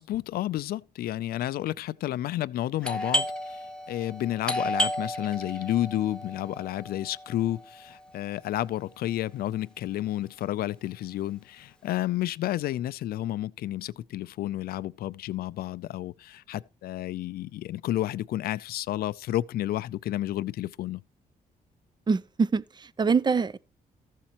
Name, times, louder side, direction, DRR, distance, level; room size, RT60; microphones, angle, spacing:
voice 1, 0.0-21.0, left 14 dB, 75° left, 0.5 m, -31 dB
Doorbell, 2.8-8.3, equal, 5° left, 1.2 m, -33 dB
voice 2, 22.1-23.6, right 5 dB, 30° right, 0.6 m, -25 dB
14.5 x 7.3 x 3.0 m
cardioid pair, 75°, 16 cm